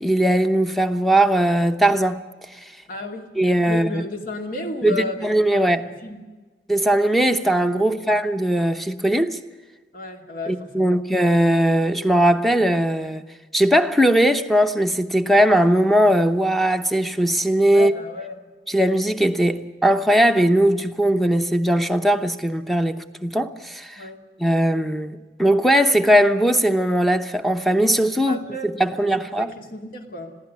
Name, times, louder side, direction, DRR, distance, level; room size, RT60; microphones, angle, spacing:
voice 1, 0.0-2.2 3.4-4.0 4.8-5.9 6.7-9.4 10.5-13.3 13.5-17.9 18.7-24.0 24.4-29.5, right 1 dB, ahead, 0.9 m, -19 dB
voice 2, 2.9-3.4 3.6-6.3 7.8-8.1 9.9-10.9 17.7-18.4 24.0-24.2 28.3-30.4, left 2 dB, 55° left, 2.6 m, -33 dB
21.5 x 15.5 x 9.5 m
head